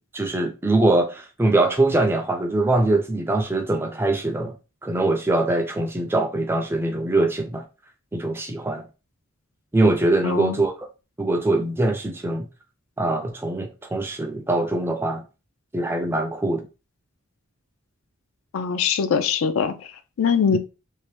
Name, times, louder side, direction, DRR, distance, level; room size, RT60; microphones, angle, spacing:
voice 1, 0.1-4.5 4.8-7.6 8.1-8.9 9.7-10.9 11.2-12.5 13.0-15.2 15.7-16.7 20.5-20.6, right 2 dB, 10° right, 0.3 m, -22 dB
voice 2, 10.2-10.6 18.5-19.7 20.2-20.6, left 6 dB, 75° left, 0.4 m, -22 dB
2.7 x 2.1 x 3.2 m
head